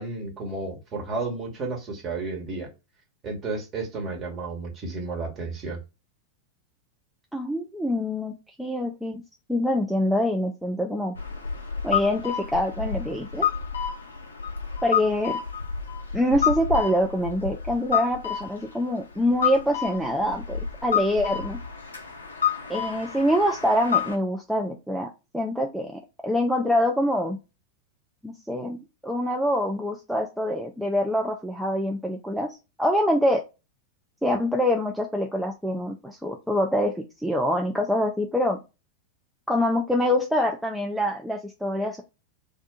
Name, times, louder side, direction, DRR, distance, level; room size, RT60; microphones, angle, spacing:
voice 1, 0.0-2.7 3.2-5.8, right 3 dB, 30° right, 0 dB, 1.2 m, -32 dB
voice 2, 7.3-8.3 8.6-9.2 9.5-11.2 11.8-13.5 14.8-15.4 16.1-21.6 22.7-25.1 25.3-27.4 28.2-33.4 34.2-38.6 39.5-42.0, left 1 dB, ahead, 1 dB, 0.4 m, -25 dB
sound 1, 11.1-24.2, left 8 dB, 70° left, 0.6 m, -29 dB
2.6 x 2.3 x 3.5 m, 0.28 s
figure-of-eight pair, 90°, 0 cm